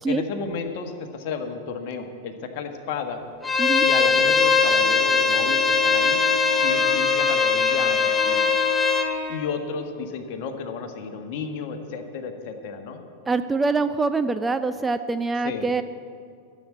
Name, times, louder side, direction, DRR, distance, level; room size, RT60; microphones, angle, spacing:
voice 1, 0.0-3.2 3.8-6.2 6.5-8.5 9.3-13.0 15.4-15.7, left 5 dB, 45° left, 6 dB, 1.4 m, -32 dB
Bowed string instrument, 3.4-9.1, left 5 dB, 10° left, 1.0 m, -20 dB
Bowed string instrument 2, 4.3-9.7, equal, 30° right, 1.8 m, -34 dB
voice 2, 13.3-15.8, right 3 dB, 10° right, 10 dB, 0.4 m, -24 dB
14.0 x 7.7 x 8.1 m, 2.3 s
figure-of-eight pair, 90°, 0 cm